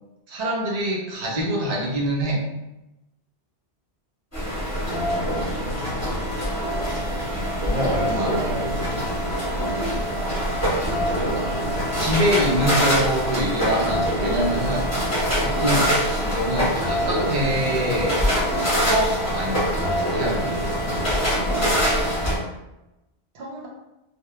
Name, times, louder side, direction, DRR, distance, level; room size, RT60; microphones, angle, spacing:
voice 1, 0.3-2.5 7.6-8.4 12.0-14.9 15.4-15.9 16.2-18.2 18.8-19.6 20.1-20.5, equal, 45° right, -3 dB, 0.6 m, -24 dB
sound 1, 4.3-22.4, equal, 15° left, 0.9 m, -24 dB
voice 2, 8.2-8.9 9.7-10.8 23.3-23.7, right 1 dB, 75° right, -2 dB, 0.9 m, -36 dB
2.1 x 2.1 x 2.9 m, 0.94 s
omnidirectional pair, 1.1 m